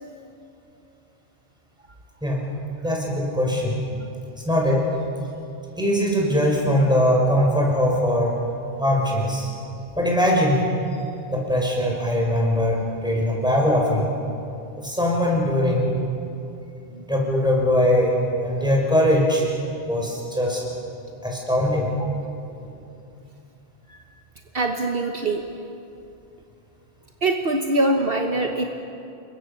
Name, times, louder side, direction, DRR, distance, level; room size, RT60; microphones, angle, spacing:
voice 1, 2.8-3.8 4.5-4.9 5.8-8.4 8.8-9.5 10.0-10.7 11.3-14.1 14.8-15.9 16.9-18.2 18.4-19.5 19.9-20.6 21.2-21.9, equal, 5° right, -2 dB, 6.1 m, -21 dB
voice 2, 24.5-25.4 27.2-28.6, right 2 dB, 60° right, 3 dB, 1.5 m, -23 dB
28.5 x 23.5 x 7.0 m, 2.7 s
omnidirectional pair, 1.1 m